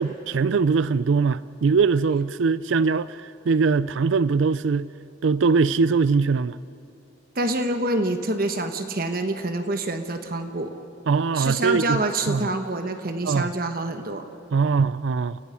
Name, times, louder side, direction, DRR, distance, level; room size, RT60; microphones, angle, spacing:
voice 1, 0.0-4.9 5.2-6.6 11.1-12.0 12.3-12.5 13.2-13.5 14.5-15.4, right 4 dB, 75° right, 0.4 m, -22 dB
voice 2, 7.3-10.7 11.3-14.3, right 2 dB, 45° right, 1.2 m, -26 dB
29.0 x 17.5 x 5.8 m
head